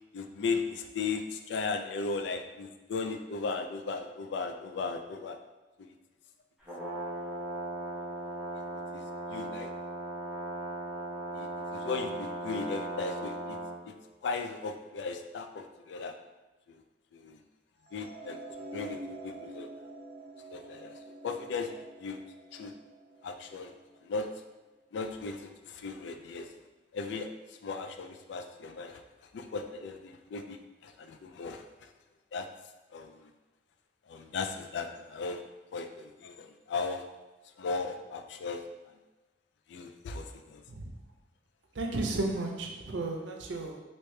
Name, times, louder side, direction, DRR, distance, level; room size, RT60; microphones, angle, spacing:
voice 1, 0.1-5.4 5.8-5.9 8.5-8.6 8.9-9.0 9.3-9.7 11.3-13.6 13.9-14.0 14.2-16.1 16.7-16.8 17.1-17.4 17.9-18.4 18.7-19.7 20.5-22.2 22.5-22.7 23.2-23.7 24.0-24.3 24.9-26.5 26.9-27.3 27.6-29.0 29.3-31.9 32.3-32.5 32.9-33.3 34.1-35.4 35.7-37.0 37.6-38.6 39.7-40.6, left 4 dB, 70° left, 6 dB, 0.3 m, -37 dB
Brass instrument, 6.6-13.8, right 1 dB, 5° right, 1.0 m, -38 dB
sound 1, 17.9-24.1, right 2 dB, 35° right, 0.5 m, -47 dB
voice 2, 41.8-43.8, right 2 dB, 80° right, 2 dB, 0.5 m, -33 dB
3.1 x 2.9 x 3.2 m, 1.2 s
head